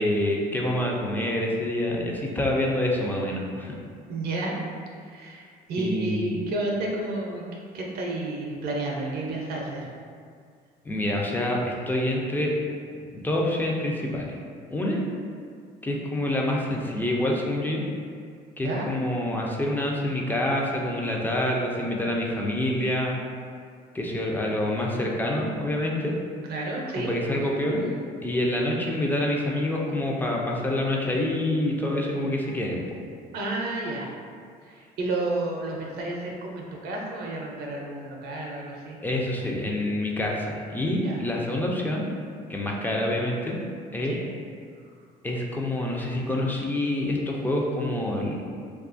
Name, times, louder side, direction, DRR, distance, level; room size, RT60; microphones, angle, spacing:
voice 1, 0.0-3.8 5.8-6.4 10.8-12.5 13.1-14.4 14.7-15.0 15.8-17.8 18.6-23.2 23.9-26.1 27.0-27.9 28.2-32.8 39.0-42.1 42.5-43.6 43.9-44.2 45.2-48.4, left 1 dB, 10° left, -2 dB, 0.3 m, -27 dB
voice 2, 4.1-4.5 5.0-9.9 18.6-18.9 26.5-27.1 33.3-34.1 34.7-39.0 41.0-41.2 44.1-44.3, right 2 dB, 65° right, -1 dB, 0.5 m, -31 dB
2.6 x 2.3 x 2.5 m, 2.2 s
cardioid pair, 110°, 17 cm